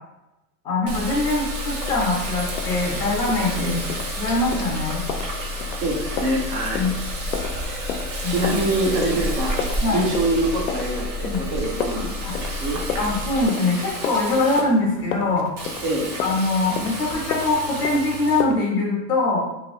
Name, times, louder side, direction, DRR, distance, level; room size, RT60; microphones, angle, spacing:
voice 1, 0.6-3.8 4.1-5.0 6.7-6.9 8.2-8.5 9.1-9.3 9.8-10.0 11.2-11.4 12.2-12.3 13.0-15.5 16.2-19.4, left 2 dB, 10° left, -4 dB, 0.6 m, -23 dB
Water tap faucet, 0.8-14.6 15.6-18.4, right 2 dB, 50° right, 1.0 m, -32 dB
sound 1, 0.9-13.5, left 4 dB, 75° right, 0.9 m, -33 dB
sound 2, 1.9-18.5, left 7 dB, 60° left, 0.5 m, -34 dB
voice 2, 5.7-6.9 7.6-7.8 8.3-9.6 9.9-12.8 15.8-16.1, right 2 dB, 35° right, -1 dB, 0.6 m, -25 dB
3.0 x 2.9 x 2.9 m, 0.93 s
supercardioid pair, 165°, 46 cm